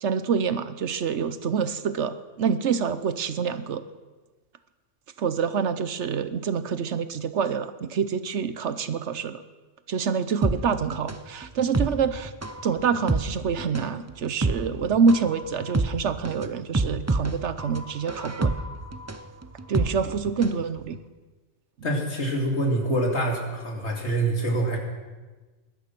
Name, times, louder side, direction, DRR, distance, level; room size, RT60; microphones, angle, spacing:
voice 1, 0.0-3.8 5.2-9.4 9.9-12.3 12.6-18.5 19.7-21.0, right 6 dB, 65° right, 13 dB, 1.1 m, -26 dB
sound 1, 10.4-20.6 20.9-21.0, right 2 dB, 15° right, 0.6 m, -28 dB
voice 2, 21.8-24.8, right 1 dB, 60° left, 1 dB, 3.0 m, -25 dB
20.0 x 12.0 x 6.0 m, 1.3 s
omnidirectional pair, 1.3 m